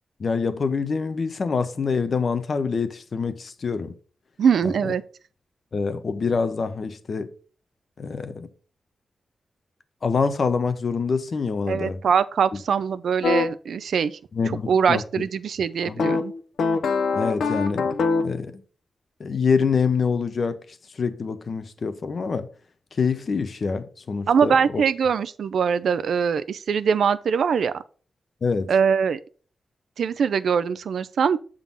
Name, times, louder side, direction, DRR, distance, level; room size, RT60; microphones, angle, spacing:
voice 1, 0.2-3.9 4.6-4.7 5.7-7.3 8.0-8.5 10.0-12.0 14.3-15.2 15.8-16.0 17.1-17.9 18.2-18.6 19.2-20.6 20.9-22.5 22.9-24.8 28.4-28.7, left 5 dB, 50° left, 0.7 m, -25 dB
voice 2, 4.4-5.0 11.7-14.2 14.7-16.3 24.3-27.8 28.7-29.2 30.0-31.4, right 6 dB, 80° right, 0.4 m, -22 dB
sound 1, 13.2-13.5 16.0-18.4, left 4 dB, 85° left, 0.8 m, -23 dB
7.3 x 3.8 x 5.4 m
wide cardioid pair, 135°, 0 cm